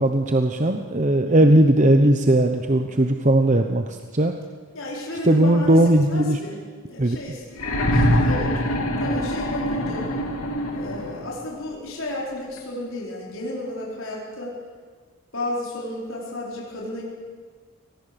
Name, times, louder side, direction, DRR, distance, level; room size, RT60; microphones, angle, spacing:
voice 1, 0.0-4.3 5.2-6.4 7.0-7.2, right 1 dB, 35° right, 5 dB, 0.9 m, -18 dB
voice 2, 4.7-5.8 6.1-6.6 6.8-7.4 7.8-8.5 9.0-10.1 10.7-14.6 15.3-17.0, left 1 dB, 65° left, -4 dB, 4.8 m, -32 dB
sound 1, 7.5-11.4 12.6-12.7, equal, 85° left, 3.0 m, -23 dB
24.5 x 18.5 x 7.0 m, 1.5 s
head